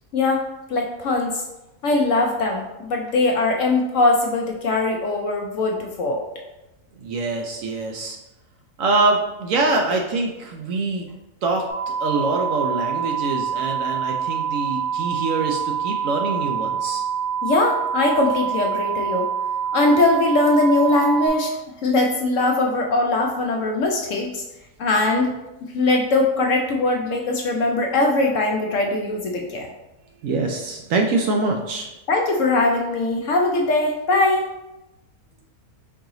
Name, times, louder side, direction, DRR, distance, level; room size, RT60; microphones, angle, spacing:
voice 1, 0.1-0.4 0.7-1.4 1.8-6.2 17.4-19.3 19.7-21.6 21.8-24.4 24.8-25.3 25.7-29.7 32.1-34.5, left 2 dB, 65° left, 1 dB, 0.8 m, -21 dB
voice 2, 7.0-8.2 8.8-11.1 11.4-17.0 30.2-31.9, right 3 dB, 70° right, 2 dB, 0.8 m, -24 dB
sound 1, 11.7-21.3, right 7 dB, 15° right, 0.9 m, -26 dB
4.7 x 2.9 x 3.7 m, 0.96 s
omnidirectional pair, 1.6 m